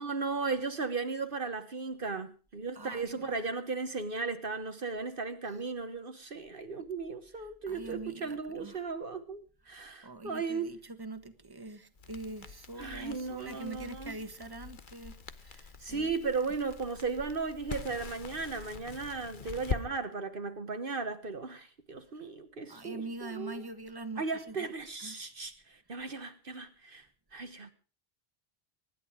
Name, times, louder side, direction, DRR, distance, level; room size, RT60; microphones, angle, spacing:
voice 1, 0.0-10.7 12.8-14.2 15.8-23.6 24.2-27.1 27.3-27.7, right 4 dB, 60° right, 1.4 m, -36 dB
voice 2, 2.7-3.4 7.7-8.8 9.7-9.8 10.0-16.1 22.1-22.3 22.7-24.7 25.0-25.2, right 2 dB, 20° right, 1.5 m, -44 dB
Crackle, 12.0-19.8, left 5 dB, 55° left, 1.2 m, -43 dB
24.5 x 11.0 x 4.9 m
omnidirectional pair, 1.0 m